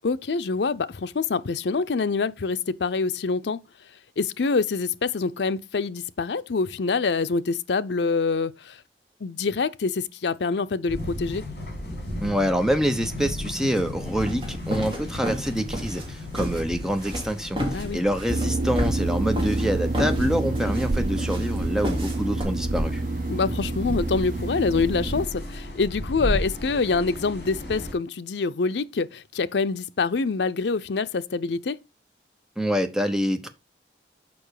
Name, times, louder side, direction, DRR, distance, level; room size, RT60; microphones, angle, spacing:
voice 1, 0.0-3.6 4.2-8.8 9.2-11.4 17.7-18.0 23.3-31.8, left 4 dB, 75° left, 0.5 m, -26 dB
sound 1, 10.9-27.9, left 1 dB, 60° left, 4.1 m, -35 dB
voice 2, 12.2-23.0 32.6-33.5, equal, 5° right, 0.9 m, -26 dB
sound 2, 13.8-22.4, equal, 30° right, 2.6 m, -32 dB
sound 3, 18.3-25.3, right 2 dB, 45° right, 0.4 m, -28 dB
7.0 x 5.4 x 4.9 m
head